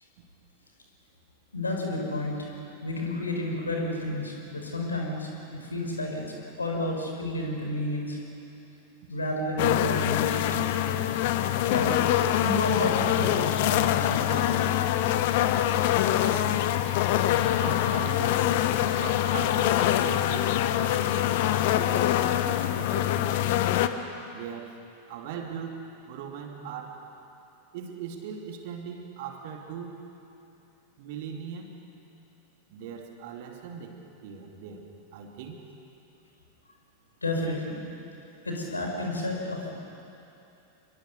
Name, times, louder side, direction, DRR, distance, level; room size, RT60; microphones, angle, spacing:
voice 1, 1.5-2.4 2.8-8.2 9.1-10.6 11.7-11.9 12.4-14.6 37.2-37.9 38.4-39.7, left 1 dB, 80° left, 1 dB, 5.0 m, -31 dB
sound 1, 9.6-23.9, left 12 dB, 50° left, 1.1 m, -24 dB
voice 2, 16.1-16.6 17.6-18.5 19.0-22.2 22.7-23.5 24.3-24.8 25.1-27.1 27.7-30.0 31.0-31.7 32.7-34.9 35.1-35.7, right 7 dB, 50° right, 3 dB, 2.9 m, -40 dB
27.5 x 22.5 x 6.7 m, 2.8 s
figure-of-eight pair, 90°, 0 cm